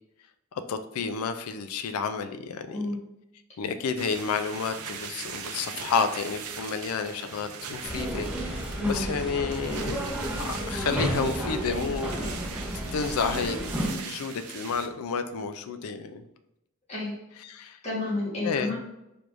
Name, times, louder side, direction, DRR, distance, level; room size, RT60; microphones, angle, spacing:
voice 1, 0.5-3.0 3.6-10.1 10.4-12.2 12.9-16.2 17.4-17.8 18.4-18.7, left 5 dB, 75° left, 10 dB, 0.4 m, -31 dB
sound 1, 4.0-14.9, right 6 dB, 85° right, 0.5 m, -41 dB
sound 2, 7.2-13.3 13.6-13.9, right 3 dB, 30° right, 0.4 m, -50 dB
sound 3, 7.8-13.9, equal, 5° right, 0.8 m, -32 dB
voice 2, 17.8-18.7, left 2 dB, 30° left, -6 dB, 1.4 m, -30 dB
4.5 x 3.4 x 2.5 m, 0.87 s
head